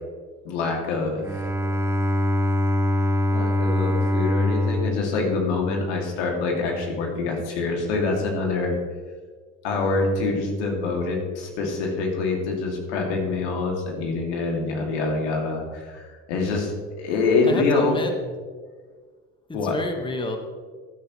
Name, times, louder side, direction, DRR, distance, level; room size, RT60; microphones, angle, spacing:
voice 1, 0.4-1.2 3.3-8.8 9.6-18.1 19.5-19.8, left 3 dB, 85° left, 0 dB, 2.5 m, -25 dB
Bowed string instrument, 1.2-6.1, left 1 dB, 10° right, 0.9 m, -24 dB
voice 2, 17.4-18.1 19.5-20.4, left 2 dB, 15° left, 4 dB, 1.4 m, -30 dB
15.0 x 9.7 x 3.1 m, 1.5 s
supercardioid pair, 85°, 34 cm